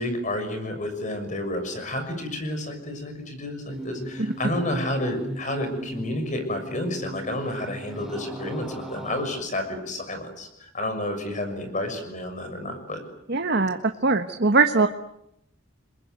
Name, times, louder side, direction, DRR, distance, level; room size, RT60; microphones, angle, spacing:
voice 1, 0.0-13.0, left 1 dB, 40° left, 7 dB, 6.5 m, -30 dB
sound 1, 3.7-9.2, right 1 dB, ahead, 3.9 m, -37 dB
voice 2, 13.3-14.9, right 3 dB, 60° right, 6 dB, 1.3 m, -21 dB
29.5 x 21.5 x 9.3 m, 0.80 s
head